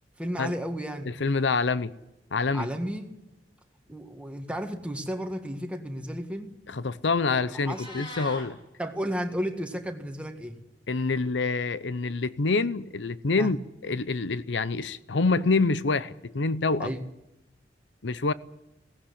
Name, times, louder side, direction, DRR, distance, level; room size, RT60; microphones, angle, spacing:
voice 1, 0.2-1.2 2.5-3.1 3.9-6.5 7.5-8.0 8.8-10.6 13.4-13.5 16.8-17.0, equal, 5° right, 1.9 m, -33 dB
voice 2, 1.2-1.9 2.3-2.7 6.7-8.6 10.9-13.6 13.8-16.9 18.0-18.3, left 3 dB, 90° left, 0.7 m, -26 dB
Meow, 7.5-8.5, left 1 dB, 30° left, 6.3 m, -41 dB
18.0 x 16.0 x 9.9 m
head